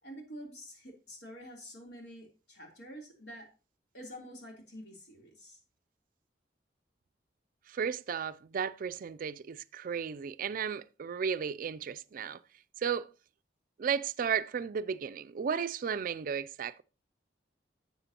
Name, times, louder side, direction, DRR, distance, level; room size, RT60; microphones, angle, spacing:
voice 1, 0.0-3.5 3.9-5.6, equal, 70° left, 3.2 m, -48 dB
voice 2, 7.7-12.4 12.8-13.1 13.8-16.8, right 7 dB, 50° right, 0.4 m, -34 dB
12.0 x 7.6 x 2.9 m
head